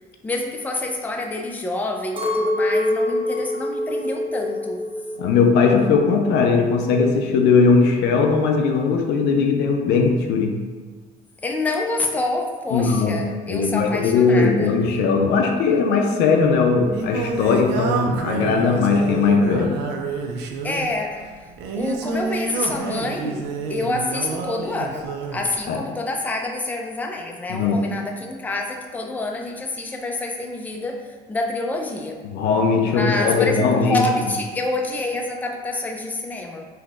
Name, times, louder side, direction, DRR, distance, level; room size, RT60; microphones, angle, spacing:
voice 1, 0.2-4.8 11.4-14.8 20.6-21.2 21.7-31.0 31.3-32.2 32.8-36.7, left 2 dB, 10° left, 1 dB, 0.4 m, -27 dB
Chink clink, 2.2-6.5 6.8-7.6, left 1 dB, 30° right, 0.6 m, -26 dB
voice 2, 5.2-10.6 12.7-13.2 13.5-19.8 25.7-25.8 27.5-27.9 32.2-34.0, left 4 dB, 85° left, 3 dB, 0.4 m, -19 dB
Singing, 16.4-25.5, right 4 dB, 85° right, 0.4 m, -28 dB
3.7 x 2.7 x 2.4 m, 1.5 s
cardioid pair, 110°, 17 cm